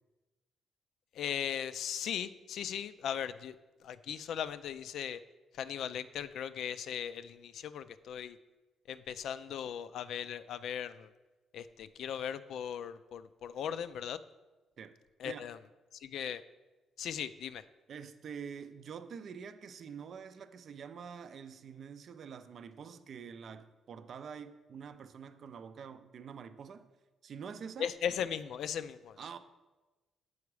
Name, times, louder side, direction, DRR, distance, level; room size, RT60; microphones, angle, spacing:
voice 1, 1.1-3.6 3.8-5.2 5.5-8.4 8.9-11.1 11.5-14.2 15.2-15.6 15.9-16.4 17.0-17.6 27.8-29.2, left 9 dB, 75° left, 0.3 m, -38 dB
voice 2, 17.9-26.9 27.2-27.9 29.2-29.4, right 6 dB, 60° right, 0.4 m, -46 dB
7.0 x 4.8 x 4.7 m
cardioid pair, 90°, 0 cm